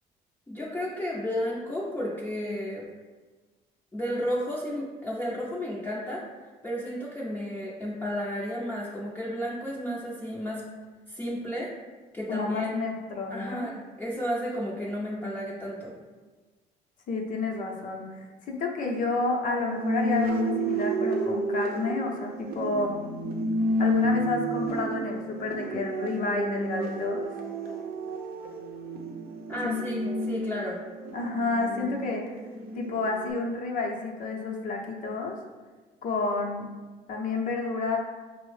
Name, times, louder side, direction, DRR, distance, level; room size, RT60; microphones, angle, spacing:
voice 1, 0.5-2.9 3.9-6.2 6.6-10.6 11.1-11.7 12.1-12.7 13.3-16.0 29.5-30.8, equal, 10° left, -7 dB, 0.6 m, -32 dB
voice 2, 12.3-13.7 17.1-22.9 23.8-27.3 29.6-29.8 30.0-30.2 31.1-32.2 32.7-35.3 36.0-36.7 37.1-38.0, left 3 dB, 50° left, 1 dB, 0.7 m, -30 dB
sound 1, 19.6-33.3, right 1 dB, 60° right, 0.6 m, -31 dB
5.3 x 2.1 x 3.1 m, 1.3 s
cardioid pair, 110°, 17 cm